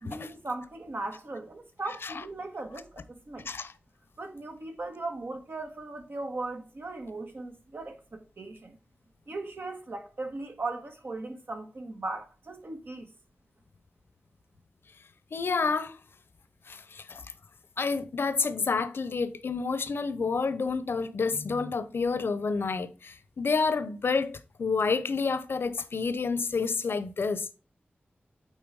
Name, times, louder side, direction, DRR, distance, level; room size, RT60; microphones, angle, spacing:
voice 1, 0.0-3.5 4.2-8.8 9.3-13.1, right 2 dB, 60° right, 1.6 m, -38 dB
voice 2, 15.3-16.0 16.7-17.2 17.8-27.5, left 4 dB, 70° left, 0.8 m, -29 dB
9.0 x 4.0 x 4.8 m
wide cardioid pair, 70°, 4 cm